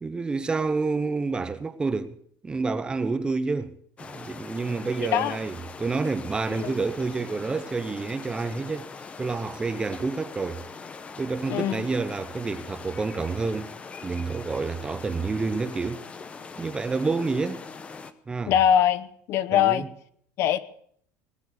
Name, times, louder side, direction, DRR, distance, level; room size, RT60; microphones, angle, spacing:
voice 1, 0.0-2.2 2.4-3.7 4.0-8.9 9.2-10.6 11.2-13.7 14.0-16.0 16.6-17.6 18.3-18.5 19.5-19.9, right 4 dB, 15° right, 0.8 m, -28 dB
sound 1, 4.0-18.1, left 5 dB, 20° left, 0.9 m, -42 dB
voice 2, 5.0-5.4 6.5-6.8 11.5-11.9 18.5-19.8 20.4-20.6, left 10 dB, 55° left, 0.9 m, -22 dB
19.0 x 7.3 x 8.0 m
cardioid pair, 140°, 6 cm